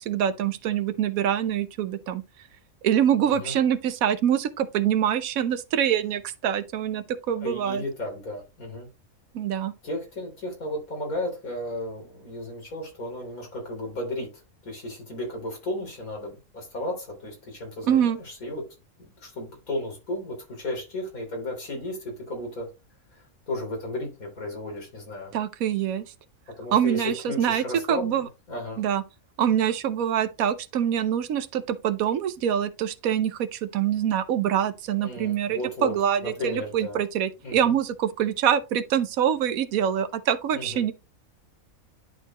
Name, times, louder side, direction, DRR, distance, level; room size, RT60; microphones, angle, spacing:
voice 1, 0.1-2.2 2.8-7.8 9.3-9.7 17.9-18.2 25.3-26.0 26.7-28.3 28.8-29.0 29.4-40.9, right 9 dB, 85° right, 1.1 m, -25 dB
voice 2, 7.4-8.9 9.8-14.3 14.6-18.6 19.0-22.7 23.1-25.3 26.6-28.8 35.0-35.9 36.2-37.0 37.4-37.7 40.5-40.8, left 1 dB, 90° left, 3.7 m, -34 dB
10.5 x 4.4 x 2.9 m
omnidirectional pair, 1.5 m